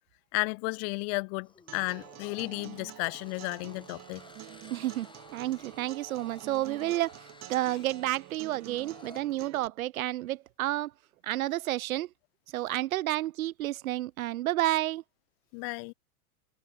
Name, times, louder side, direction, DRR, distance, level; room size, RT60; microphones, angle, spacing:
voice 1, 0.3-4.2 15.5-15.9, left 34 dB, 40° left, 0.9 m, -33 dB
sound 1, 1.4-9.2, left 4 dB, 10° left, 7.4 m, -54 dB
Acoustic guitar, 1.7-9.7, right 16 dB, 35° right, 5.7 m, -48 dB
voice 2, 4.7-10.9 11.2-12.1 12.5-15.0, right 15 dB, 65° right, 1.1 m, -31 dB
hypercardioid pair, 115°, 44 cm